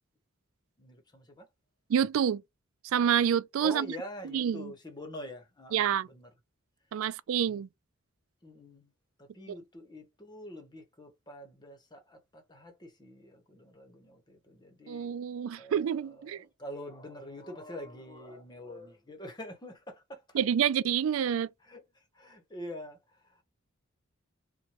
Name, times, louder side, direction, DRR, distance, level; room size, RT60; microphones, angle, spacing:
voice 1, 0.8-1.5 3.6-6.3 7.0-7.1 7.4-7.6 8.4-8.9 9.2-15.1 15.6-20.4 21.6-23.4, equal, 20° left, 1.0 m, -45 dB
voice 2, 1.9-2.4 2.9-3.9 4.3-4.7 5.7-6.1 6.9-7.7 14.9-16.4 20.4-21.5, right 8 dB, 70° right, 0.3 m, -28 dB
4.3 x 2.2 x 3.0 m
head